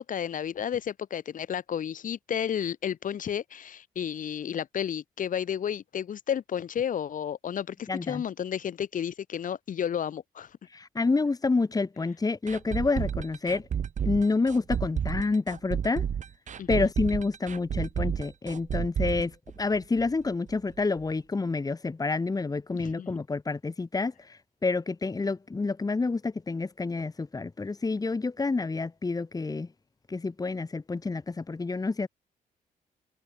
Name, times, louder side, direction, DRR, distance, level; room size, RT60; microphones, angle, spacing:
voice 1, 0.1-10.5 16.6-16.9 22.7-23.1, left 9 dB, 60° left, 4.5 m, -32 dB
voice 2, 7.9-8.2 10.7-13.7 14.0-16.0 16.7-19.3 19.6-29.7 30.1-32.1, left 3 dB, 25° left, 2.6 m, -28 dB
sound 1, 12.5-20.2 20.5-20.6 21.0-21.1, right 8 dB, 55° right, 2.4 m, -31 dB
cardioid pair, 85°, 15 cm